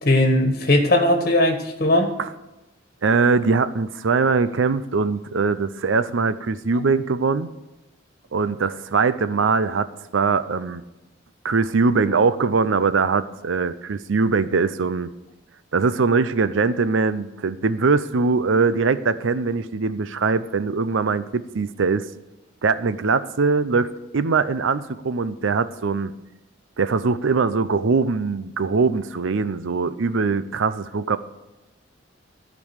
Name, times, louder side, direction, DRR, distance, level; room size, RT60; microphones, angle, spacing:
voice 1, 0.0-2.1, left 1 dB, 45° left, 3 dB, 1.4 m, -18 dB
voice 2, 3.0-7.5 8.3-9.9 10.1-10.8 11.4-15.1 15.7-22.1 22.6-26.1 26.8-31.2, right 4 dB, 80° right, 14 dB, 0.6 m, -21 dB
13.5 x 5.3 x 8.1 m, 0.99 s
head